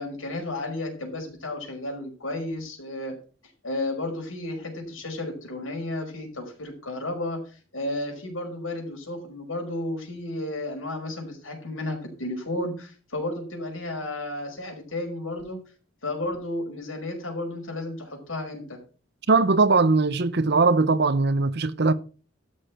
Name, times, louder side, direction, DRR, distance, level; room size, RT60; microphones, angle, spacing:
voice 1, 0.0-3.1 3.6-15.6 16.0-18.8, left 2 dB, 85° left, 5.4 m, -33 dB
voice 2, 19.3-21.9, right 3 dB, 55° right, 0.9 m, -20 dB
13.0 x 6.7 x 5.9 m
head